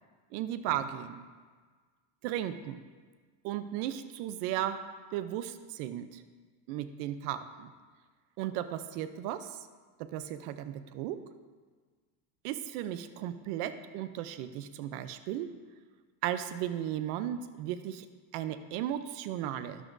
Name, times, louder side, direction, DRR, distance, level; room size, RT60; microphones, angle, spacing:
voice 1, 0.3-1.2 2.2-2.8 3.4-4.8 5.1-6.2 6.7-7.7 8.4-9.7 10.0-11.2 12.4-15.5 16.2-18.1 18.3-19.9, right 11 dB, 80° right, 11 dB, 0.8 m, -35 dB
12.0 x 11.5 x 2.6 m, 1.5 s
cardioid pair, 140°, 46 cm